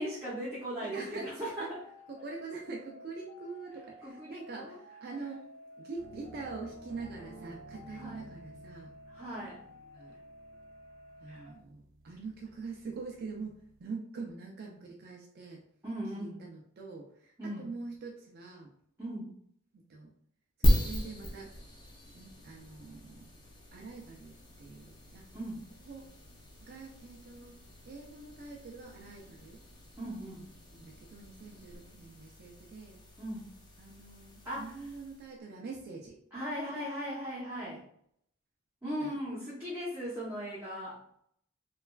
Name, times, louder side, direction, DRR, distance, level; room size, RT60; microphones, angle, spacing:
voice 1, 0.0-1.8 4.0-4.8 7.9-8.3 9.1-9.6 11.3-11.5 15.8-16.4 17.4-17.7 19.0-19.3 25.3-25.6 30.0-30.4 33.2-33.5 34.4-34.7 36.3-37.8 38.8-41.0, equal, 15° right, -9 dB, 0.7 m, -38 dB
voice 2, 0.8-1.7 2.1-5.5 5.8-8.9 9.9-10.2 11.2-15.6 16.1-18.7 19.7-20.1 20.6-21.5 22.1-23.3 23.7-25.2 25.9-26.0 26.7-27.6 27.9-29.6 30.7-33.0 33.8-36.1 38.8-39.2, right 4 dB, 50° right, -1 dB, 0.4 m, -44 dB
sound 1, 1.4-11.6, left 1 dB, 90° left, 0.9 m, -53 dB
sound 2, 6.0-13.9, right 1 dB, 80° right, 0.9 m, -55 dB
sound 3, 20.6-35.4, equal, 20° left, 0.5 m, -37 dB
3.1 x 2.3 x 2.2 m, 0.67 s
head